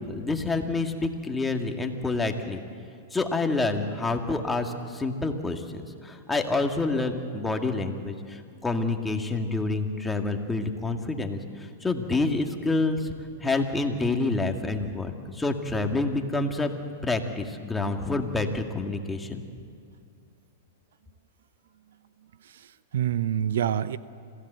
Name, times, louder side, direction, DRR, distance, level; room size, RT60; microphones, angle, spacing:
voice 1, 0.0-2.6 3.1-11.4 11.8-13.1 13.4-16.7 17.0-19.4, left 3 dB, 10° left, 4 dB, 1.9 m, -28 dB
voice 2, 22.4-24.0, right 10 dB, 75° right, 15 dB, 0.7 m, -27 dB
26.5 x 15.5 x 8.0 m, 2.4 s
hypercardioid pair, 125°, 0 cm